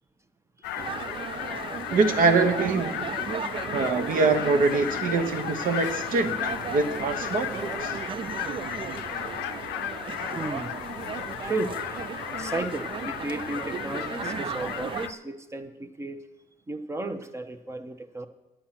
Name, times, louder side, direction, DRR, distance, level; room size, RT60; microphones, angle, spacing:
sound 1, 0.6-15.1, left 11 dB, 90° left, 0.6 m, -34 dB
sound 2, 0.8-15.1, right 7 dB, 30° right, 0.3 m, -36 dB
voice 1, 1.9-3.1 3.7-6.4 6.7-8.0, right 4 dB, 55° right, 1.2 m, -24 dB
voice 2, 10.3-10.7 11.4-12.0 12.3-16.2 16.7-18.3, right 2 dB, 15° right, 0.8 m, -34 dB
10.0 x 8.8 x 5.8 m
cardioid pair, 110°, 17 cm